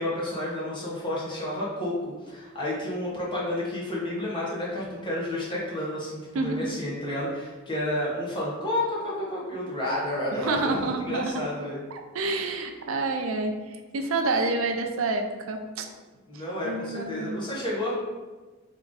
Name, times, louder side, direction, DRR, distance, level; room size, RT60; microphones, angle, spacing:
voice 1, 0.0-1.9 2.3-11.8 16.3-17.9, left 1 dB, 25° left, -6 dB, 1.3 m, -30 dB
voice 2, 6.3-6.7 10.3-11.3 11.9-15.9 16.6-17.4, right 3 dB, 90° right, 5 dB, 0.5 m, -28 dB
3.6 x 3.4 x 3.9 m, 1.3 s
head